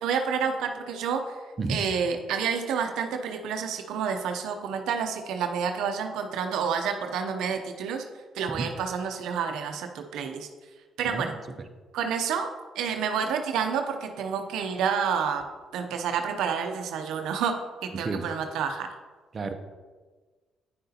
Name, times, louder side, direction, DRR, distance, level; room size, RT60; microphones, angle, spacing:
voice 1, 0.0-1.2 1.7-8.0 8.3-10.5 11.0-11.3 11.9-12.5 12.8-15.4 15.7-18.9, right 6 dB, 85° right, 5 dB, 0.6 m, -29 dB
voice 2, 1.6-1.8 8.5-8.7 11.1-11.3 18.0-18.3 19.3-19.5, right 3 dB, 40° right, 6 dB, 0.7 m, -30 dB
9.4 x 7.7 x 2.8 m, 1.4 s
cardioid pair, 90°, 0 cm